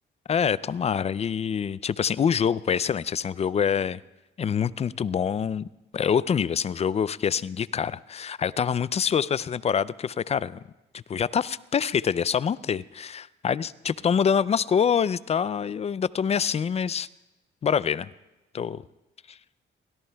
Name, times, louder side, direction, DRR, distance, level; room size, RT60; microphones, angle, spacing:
voice 1, 0.3-4.0 4.4-5.7 5.9-10.6 10.9-17.1 17.6-18.1 18.5-18.8 19.3-19.4, left 7 dB, 35° left, 19 dB, 0.3 m, -25 dB
24.0 x 17.5 x 2.3 m, 1.0 s
cardioid pair, 90°, 20 cm